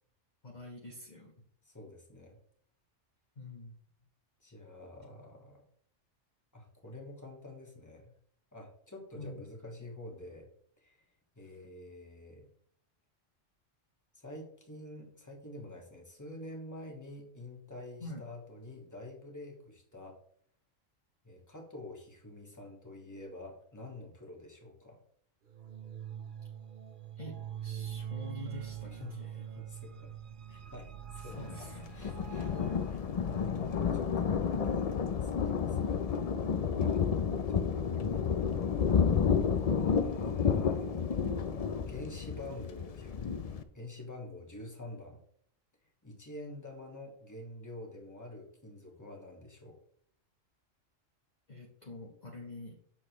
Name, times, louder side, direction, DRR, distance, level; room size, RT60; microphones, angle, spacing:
voice 1, 0.4-1.3 3.4-3.7 9.2-9.4 18.0-18.3 27.2-29.4 31.2-32.0 32.6-33.1 51.5-52.8, left 1 dB, 35° left, -1 dB, 1.1 m, -47 dB
voice 2, 1.6-2.4 4.4-5.7 6.5-8.1 8.5-10.5 10.8-11.1 11.3-12.5 14.1-20.2 21.2-25.0 28.8-30.1 30.5-31.5 31.9-32.6 33.1-36.3 36.8-37.0 37.5-38.5 39.8-41.1 41.9-43.2 43.7-45.2 46.0-49.8, left 1 dB, 15° left, 1 dB, 1.6 m, -48 dB
sound 1, 25.5-33.8, right 9 dB, 50° right, 0.8 m, -44 dB
Thunder, 31.3-43.6, left 6 dB, 65° left, 0.3 m, -31 dB
7.5 x 6.5 x 3.0 m, 0.65 s
omnidirectional pair, 1.3 m